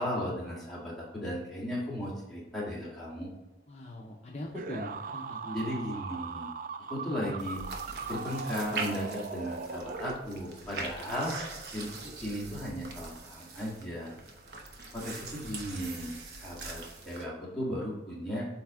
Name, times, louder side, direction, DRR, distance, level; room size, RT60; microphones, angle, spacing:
voice 1, 0.0-3.3 5.5-6.5 6.9-7.6 8.1-11.4 11.7-14.1 14.9-18.5, equal, ahead, -7 dB, 1.8 m, -36 dB
voice 2, 3.7-5.8, left 1 dB, 35° left, -1 dB, 0.6 m, -41 dB
sound 1, 4.5-10.6, right 5 dB, 50° right, 0.3 m, -39 dB
sound 2, 7.4-17.2, right 3 dB, 70° right, 0.9 m, -42 dB
7.8 x 3.3 x 3.7 m, 1.1 s
head